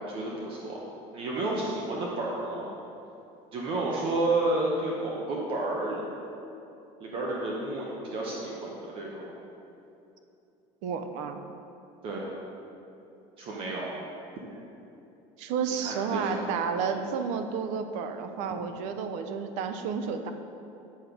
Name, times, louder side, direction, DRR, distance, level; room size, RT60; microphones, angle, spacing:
voice 1, 0.1-0.8 1.1-2.7 3.5-6.0 7.0-9.4 12.0-12.3 13.4-13.9 15.8-16.6, right 2 dB, 40° right, -3 dB, 1.0 m, -31 dB
voice 2, 10.8-11.4 15.4-20.3, right 6 dB, 60° right, 7 dB, 0.6 m, -31 dB
7.9 x 6.5 x 5.1 m, 2.8 s
cardioid pair, 170°, 14 cm